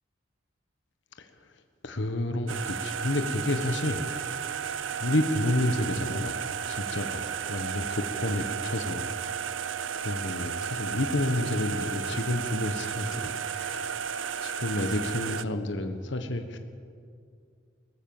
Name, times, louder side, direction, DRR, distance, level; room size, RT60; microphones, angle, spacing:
voice 1, 1.2-1.5 1.8-4.1 5.0-6.3 6.7-9.1 9.9-14.0 14.4-16.6, left 1 dB, 70° left, 7 dB, 1.4 m, -30 dB
sound 1, 2.5-15.4, right 7 dB, 75° right, 0.7 m, -33 dB
21.5 x 19.0 x 7.3 m, 2.3 s
head